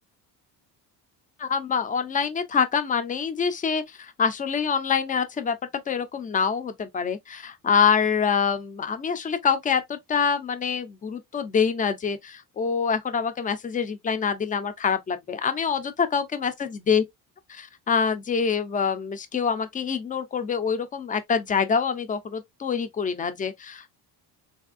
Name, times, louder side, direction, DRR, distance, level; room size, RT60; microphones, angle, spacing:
voice 1, 1.4-5.6 5.9-17.0 17.5-23.9, left 6 dB, 20° left, 0.4 m, -25 dB
4.0 x 2.5 x 2.4 m
cardioid pair, 175°, 39 cm